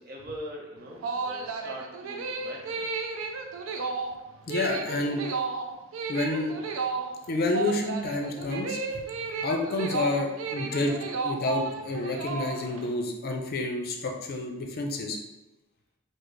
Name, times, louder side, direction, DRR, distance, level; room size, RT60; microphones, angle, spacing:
voice 1, 0.0-2.9, equal, 50° right, -2 dB, 0.8 m, -42 dB
sound 1, 0.8-12.9, right 4 dB, 80° right, 0.4 m, -33 dB
voice 2, 4.5-5.2 6.1-6.6 7.3-9.0 9.4-11.0 11.2-15.2, left 2 dB, 50° left, 2 dB, 0.5 m, -29 dB
3.9 x 2.0 x 3.2 m, 1.0 s
head